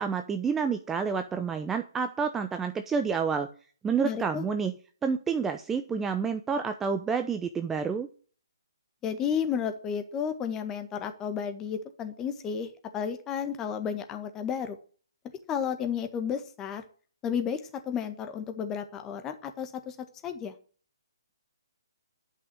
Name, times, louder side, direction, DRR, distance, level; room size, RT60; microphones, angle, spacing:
voice 1, 0.0-3.5 3.8-4.7 5.0-8.1, right 6 dB, 10° right, 8 dB, 0.7 m, -29 dB
voice 2, 4.0-4.4 9.0-14.8 15.5-16.8 17.2-20.5, left 7 dB, 20° left, 7 dB, 1.6 m, -32 dB
11.5 x 6.0 x 7.8 m, 0.41 s
figure-of-eight pair, 140°, 2 cm